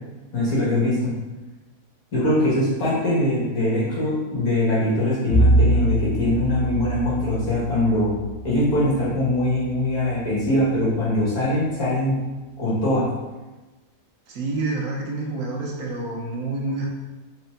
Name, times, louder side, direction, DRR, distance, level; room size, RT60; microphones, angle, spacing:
voice 1, 0.3-1.1 2.1-8.1 8.4-12.2 12.6-13.0, left 1 dB, 60° left, -9 dB, 2.2 m, -22 dB
Bowed string instrument, 5.3-9.9, right 1 dB, 35° left, 1.0 m, -24 dB
voice 2, 14.3-16.9, right 2 dB, 65° right, -2 dB, 1.3 m, -28 dB
4.7 x 4.4 x 2.6 m, 1.1 s
omnidirectional pair, 1.8 m